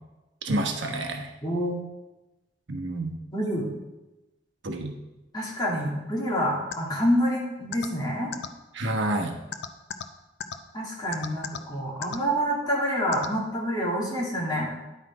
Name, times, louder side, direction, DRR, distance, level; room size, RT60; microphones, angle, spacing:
voice 1, 0.4-1.3 2.7-3.2 4.6-4.9 8.7-9.4, right 1 dB, 80° right, 2 dB, 1.1 m, -28 dB
voice 2, 1.4-1.8 3.3-3.7 5.3-8.3 10.7-14.7, equal, 25° left, -4 dB, 2.5 m, -27 dB
sound 1, 6.7-6.8 7.7-7.9 8.3-8.5 9.5-10.0 10.4-10.5 11.1-11.6 12.0-12.2 13.1-13.3, left 7 dB, 65° left, 0.6 m, -32 dB
10.0 x 5.9 x 4.8 m, 1.0 s
head